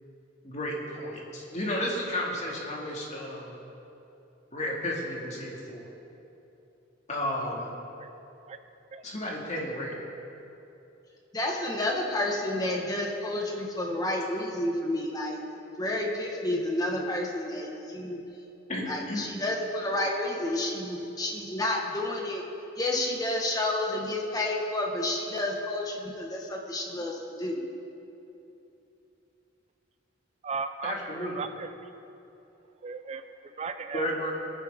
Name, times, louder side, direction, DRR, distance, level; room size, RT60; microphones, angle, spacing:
voice 1, 0.4-3.5 4.5-5.9 7.1-7.7 9.0-10.0 18.7-19.3 30.8-31.4 33.9-34.3, left 1 dB, 35° left, -3 dB, 2.3 m, -32 dB
voice 2, 11.3-15.4 15.8-18.2 18.9-22.4 22.8-27.6, left 1 dB, 20° left, -1 dB, 1.5 m, -30 dB
voice 3, 30.4-30.9 31.2-31.7 32.8-34.1, right 5 dB, 35° right, 9 dB, 0.4 m, -36 dB
22.5 x 9.8 x 3.7 m, 2.9 s
head